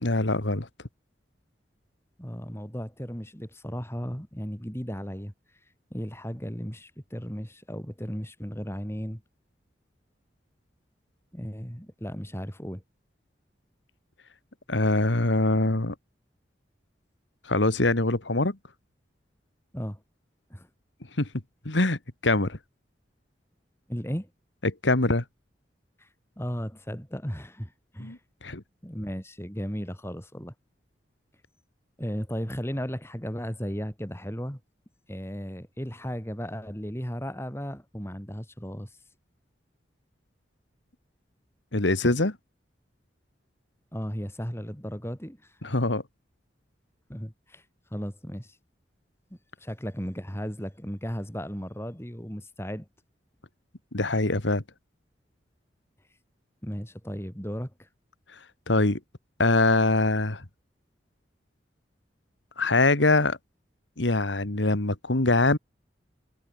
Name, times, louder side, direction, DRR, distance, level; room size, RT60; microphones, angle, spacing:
voice 1, 0.0-0.7 14.7-15.9 17.5-18.6 21.2-21.3 21.7-22.6 24.6-25.2 28.0-28.6 41.7-42.4 45.6-46.0 53.9-54.6 58.7-59.0 59.4-60.4 62.6-63.4 64.0-65.6, left 2 dB, 85° left, 2.2 m, -23 dB
voice 2, 2.2-5.3 5.9-9.2 11.3-12.8 19.7-20.0 20.5-20.7 23.9-24.3 26.0-26.1 26.4-28.2 28.8-30.5 32.0-34.6 35.1-38.9 43.9-45.4 47.1-47.6 47.9-48.6 49.3-52.9 56.6-57.9, equal, 15° left, 6.4 m, -35 dB
head